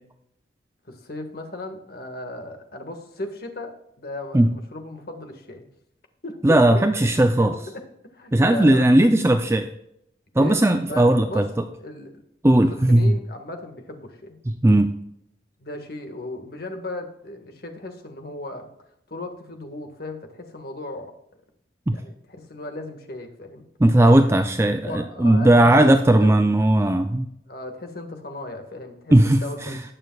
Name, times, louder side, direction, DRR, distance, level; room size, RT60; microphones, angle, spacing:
voice 1, 0.9-5.7 6.2-6.8 7.4-7.8 8.1-9.1 10.4-10.6 10.9-11.5 11.8-12.2 12.5-14.4 15.6-18.7 19.1-21.1 21.9-23.7 24.7-26.3 27.5-29.8, left 1 dB, 55° left, 5 dB, 1.7 m, -36 dB
voice 2, 6.4-7.5 8.3-9.7 10.4-11.5 12.4-13.2 14.5-14.9 21.9-22.0 23.8-27.3 29.1-29.8, right 1 dB, 15° right, 7 dB, 0.4 m, -17 dB
19.0 x 6.7 x 2.4 m, 0.77 s
head